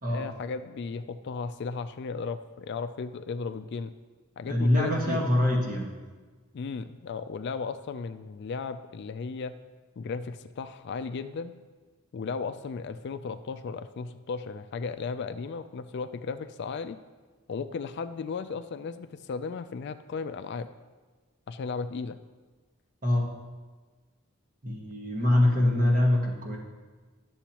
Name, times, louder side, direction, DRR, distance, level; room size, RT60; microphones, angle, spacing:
voice 1, 0.1-3.9 4.4-5.2 6.5-9.6 10.0-11.6 12.1-17.0 17.5-20.7 21.5-22.2, left 5 dB, 50° left, 10 dB, 0.3 m, -35 dB
voice 2, 4.5-5.9 23.0-23.3 24.6-26.6, left 1 dB, 40° right, 0 dB, 1.4 m, -24 dB
11.5 x 7.0 x 2.9 m, 1.3 s
head